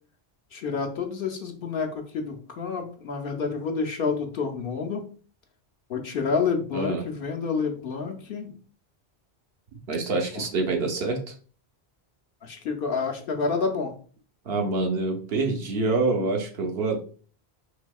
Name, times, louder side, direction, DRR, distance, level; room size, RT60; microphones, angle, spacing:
voice 1, 0.5-5.0 5.9-8.5 10.3-10.4 12.4-13.9, left 5 dB, 65° left, 3 dB, 0.8 m, -29 dB
voice 2, 6.7-7.0 9.9-11.3 14.5-17.0, right 3 dB, 70° right, 3 dB, 1.0 m, -26 dB
4.1 x 2.7 x 2.3 m, 0.41 s
omnidirectional pair, 1.1 m